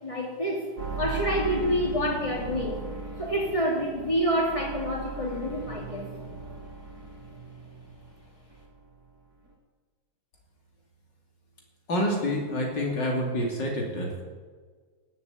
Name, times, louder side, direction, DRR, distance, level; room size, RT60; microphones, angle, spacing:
voice 1, 0.0-0.7 1.0-2.9 3.2-6.1, equal, 15° left, -1 dB, 3.2 m, -28 dB
sound 1, 0.8-8.3 8.5-9.2 9.5-9.6, right 4 dB, 50° right, 2.6 m, -38 dB
voice 2, 11.9-14.2, left 1 dB, 60° left, -1 dB, 3.3 m, -27 dB
18.5 x 7.0 x 8.7 m, 1.5 s
omnidirectional pair, 2.2 m